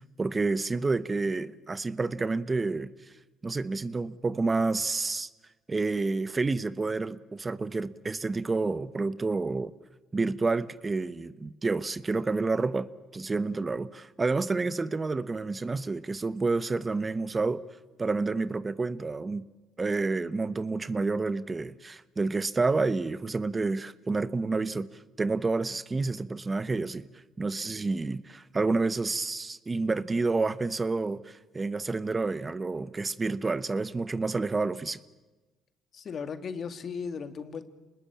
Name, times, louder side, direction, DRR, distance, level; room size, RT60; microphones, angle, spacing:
voice 1, 0.2-2.9 3.4-5.3 5.7-9.7 10.1-17.6 18.0-19.5 19.8-27.1 27.4-35.0, right 3 dB, 25° right, 1.1 m, -29 dB
voice 2, 35.9-37.6, left 6 dB, 50° left, 2.1 m, -36 dB
26.5 x 20.5 x 8.7 m
supercardioid pair, 70°, 0 cm